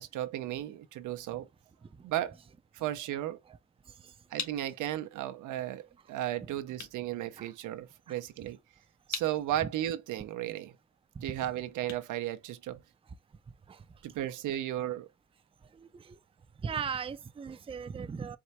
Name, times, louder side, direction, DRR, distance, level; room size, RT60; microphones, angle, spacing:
voice 1, 0.0-1.5 2.0-2.4 2.7-3.4 4.3-8.6 9.1-10.8 11.2-12.8 14.0-15.1, right 13 dB, 85° right, 0.7 m, -35 dB
sound 1, 3.7-13.1, left 6 dB, 65° left, 1.7 m, -46 dB
voice 2, 15.8-16.2 16.6-18.4, right 6 dB, 20° right, 0.4 m, -37 dB
4.6 x 2.1 x 4.1 m
cardioid pair, 90°, 30 cm